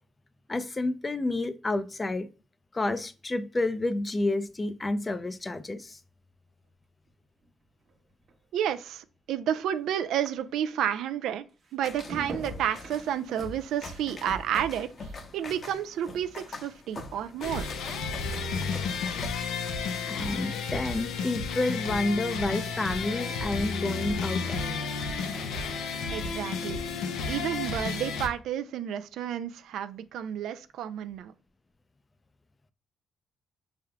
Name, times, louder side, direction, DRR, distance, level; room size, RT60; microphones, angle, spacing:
voice 1, 0.5-2.3 2.7-6.0 20.1-24.9, left 2 dB, 25° left, 0.4 m, -30 dB
sound 1, 4.1-10.9 11.2-15.8 16.1-16.6, right 2 dB, 55° right, 1.0 m, -48 dB
voice 2, 8.5-11.4 11.7-17.7 26.1-26.8 27.3-31.3, right 10 dB, 80° right, 0.3 m, -31 dB
sound 2, 11.8-19.3, left 3 dB, 45° left, 0.8 m, -43 dB
sound 3, 17.4-28.3, left 5 dB, 90° left, 0.6 m, -32 dB
5.6 x 3.5 x 2.2 m
cardioid pair, 90°, 0 cm